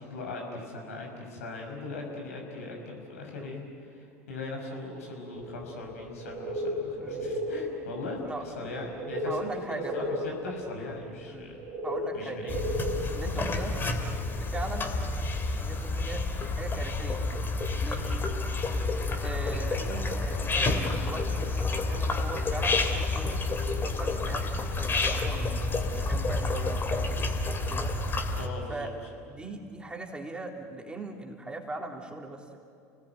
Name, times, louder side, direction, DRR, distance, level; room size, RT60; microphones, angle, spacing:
voice 1, 0.0-9.4 9.7-11.6 12.1-12.7 18.0-18.2 28.3-28.9, left 2 dB, 80° left, 1 dB, 6.0 m, -40 dB
sound 1, 5.3-20.7 21.8-21.9 22.6-22.7, equal, 35° right, 4.2 m, -37 dB
voice 2, 7.0-7.3 8.2-8.4 9.3-10.0 10.4-10.5 11.3-11.5 11.8-12.5 13.1-13.8 14.3-14.9 15.6-16.2 16.6-17.2 17.8-18.0 19.2-23.4 23.8-27.3 27.7-27.9 28.7-28.9 29.3-32.6, right 2 dB, 10° right, 1 dB, 3.8 m, -40 dB
sound 2, 12.5-28.5, left 3 dB, 25° left, 2.9 m, -29 dB
30.0 x 19.5 x 9.3 m, 2.5 s
hypercardioid pair, 75°, 8 cm